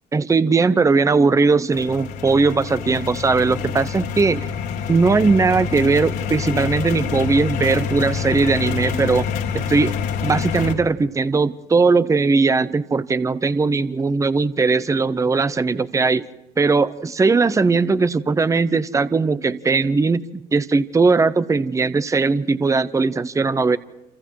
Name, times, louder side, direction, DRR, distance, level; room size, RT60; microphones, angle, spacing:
voice 1, 0.1-4.5 4.9-9.3 9.5-9.9 10.2-16.3 16.6-23.8, right 4 dB, 20° right, 14 dB, 0.8 m, -19 dB
sound 1, 1.7-10.7, left 7 dB, 90° left, 3.6 m, -27 dB
29.0 x 26.5 x 4.7 m, 0.99 s
cardioid pair, 110°, 17 cm